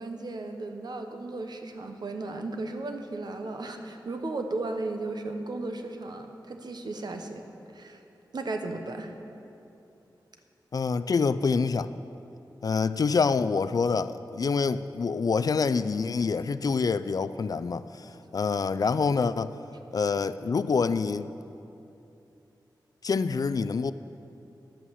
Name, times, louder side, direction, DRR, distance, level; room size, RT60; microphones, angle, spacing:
voice 1, 0.0-7.4 7.7-8.0 8.3-9.1, right 2 dB, 60° right, 5 dB, 1.0 m, -35 dB
voice 2, 10.7-11.9 12.6-19.6 19.9-21.3 23.0-23.9, left 5 dB, 50° left, 13 dB, 0.4 m, -26 dB
11.5 x 8.4 x 7.1 m, 2.8 s
wide cardioid pair, 125°, 8 cm